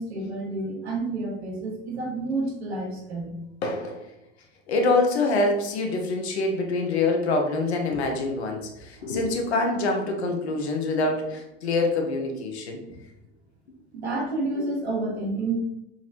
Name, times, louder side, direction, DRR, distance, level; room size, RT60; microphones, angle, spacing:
voice 1, 0.0-3.3 9.0-9.1 12.8-13.0 13.9-15.5, right 2 dB, 80° right, -2 dB, 1.1 m, -30 dB
voice 2, 3.6-4.0 4.7-12.8, left 2 dB, 75° left, 2 dB, 0.8 m, -25 dB
3.9 x 3.0 x 2.5 m, 0.87 s
figure-of-eight pair, 80°, 32 cm